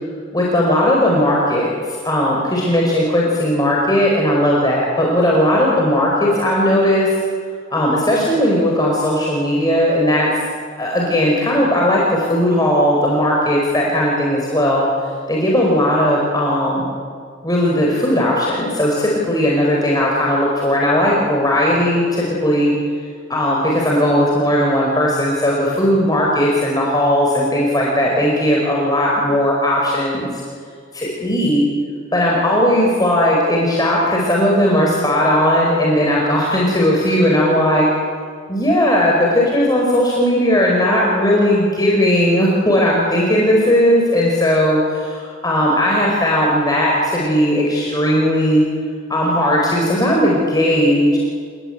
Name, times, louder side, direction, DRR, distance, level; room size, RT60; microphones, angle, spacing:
voice 1, 0.3-7.1 7.7-10.3 10.8-14.9 15.3-16.9 17.4-22.7 23.3-30.4 30.9-31.6 32.1-37.9 38.5-48.7 49.1-51.2, equal, 20° left, -3 dB, 4.8 m, -17 dB
29.5 x 20.0 x 9.0 m, 2.1 s
head